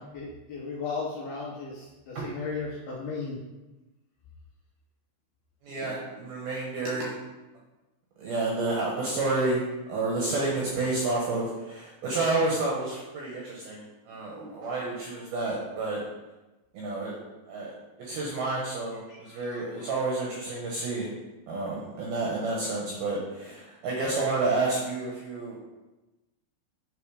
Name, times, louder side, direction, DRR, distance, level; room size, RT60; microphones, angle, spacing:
voice 1, 0.1-3.4 19.1-19.9, left 4 dB, 75° left, -5 dB, 2.3 m, -36 dB
voice 2, 5.6-7.2 8.2-9.6 9.9-16.0 16.7-17.2 17.5-17.7 18.0-21.1 21.5-25.6, right 2 dB, 70° right, -3 dB, 2.3 m, -30 dB
8.6 x 4.4 x 4.8 m, 1.1 s
omnidirectional pair, 5.7 m